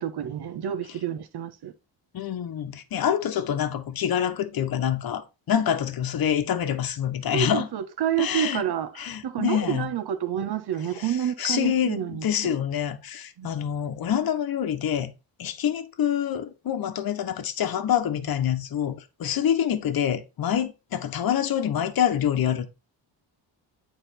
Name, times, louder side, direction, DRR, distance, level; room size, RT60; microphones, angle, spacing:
voice 1, 0.0-1.7 7.3-12.5 13.4-13.5, right 10 dB, 55° right, 1.2 m, -29 dB
voice 2, 2.1-7.7 8.2-8.6 9.0-9.9 11.0-11.1 11.4-15.1 15.4-22.7, left 9 dB, 50° left, 1.1 m, -26 dB
8.8 x 4.2 x 4.2 m
cardioid pair, 115°, 47 cm